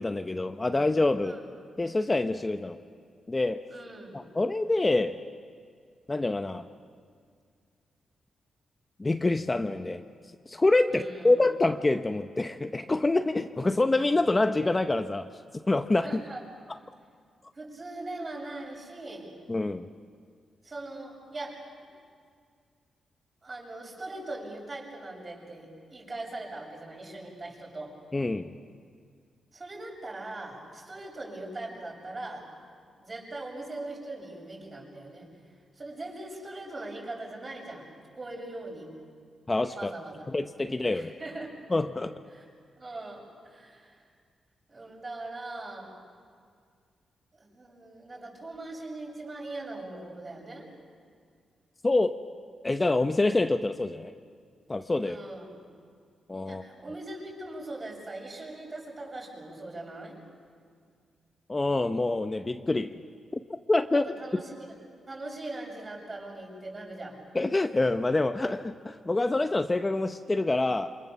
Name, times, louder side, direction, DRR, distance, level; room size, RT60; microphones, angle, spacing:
voice 1, 0.0-1.4 1.8-2.8 3.3-3.6 4.1-5.2 6.1-6.7 9.0-10.0 10.5-15.3 15.7-16.2 19.5-19.9 28.1-28.5 39.5-39.9 40.3-41.1 41.7-42.1 51.8-52.2 52.6-54.1 54.7-55.2 56.3-56.6 61.5-63.0 63.7-64.1 67.3-70.9, left 2 dB, 25° left, 8 dB, 0.8 m, -26 dB
voice 2, 3.7-4.2 10.9-11.4 16.0-16.4 17.5-19.3 20.6-21.7 23.4-27.9 29.5-32.5 33.0-35.3 35.7-38.9 39.7-40.3 40.7-41.6 42.3-42.5 42.8-44.1 44.7-45.9 47.3-50.7 55.0-55.6 56.5-60.2 63.9-64.7 65.1-67.2, right 2 dB, 35° right, -1 dB, 7.6 m, -41 dB
28.0 x 24.5 x 7.1 m, 2.1 s
cardioid pair, 85°, 0 cm